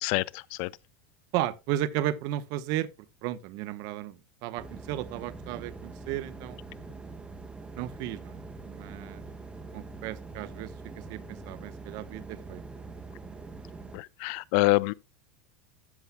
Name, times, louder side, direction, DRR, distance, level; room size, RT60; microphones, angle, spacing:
voice 1, 0.0-0.7 13.9-14.9, left 21 dB, 60° left, 0.4 m, -26 dB
voice 2, 1.3-2.9 3.2-6.6 7.7-8.4 8.7-9.2 9.7-12.6, right 13 dB, 55° right, 0.9 m, -34 dB
sound 1, 4.6-14.0, right 3 dB, 15° right, 1.4 m, -44 dB
13.0 x 7.8 x 2.2 m
supercardioid pair, 115°, 8 cm